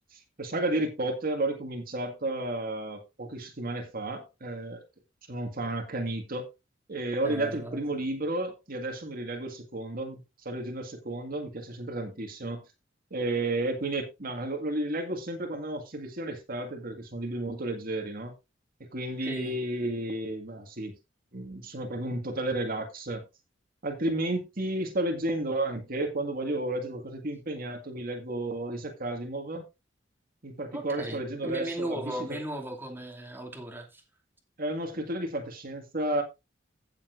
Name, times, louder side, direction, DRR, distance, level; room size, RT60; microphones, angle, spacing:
voice 1, 0.1-4.8 5.3-6.5 6.9-12.6 13.1-18.3 18.9-21.0 21.3-23.2 23.8-29.6 30.4-32.4 34.6-36.2, right 2 dB, 50° right, 2.0 m, -32 dB
voice 2, 7.2-7.8 19.2-19.6 30.7-34.0, right 1 dB, 10° right, 2.6 m, -36 dB
16.0 x 7.3 x 2.6 m
head